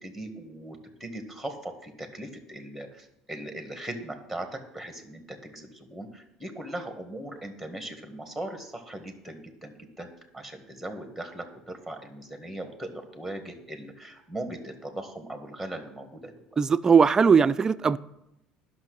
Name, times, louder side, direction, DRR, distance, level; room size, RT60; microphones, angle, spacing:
voice 1, 0.0-10.1 10.3-16.3, right 1 dB, 5° left, 5 dB, 1.6 m, -39 dB
voice 2, 16.6-18.0, right 6 dB, 25° right, 14 dB, 0.4 m, -19 dB
10.5 x 6.0 x 6.4 m, 0.85 s
supercardioid pair, 110°, 3 cm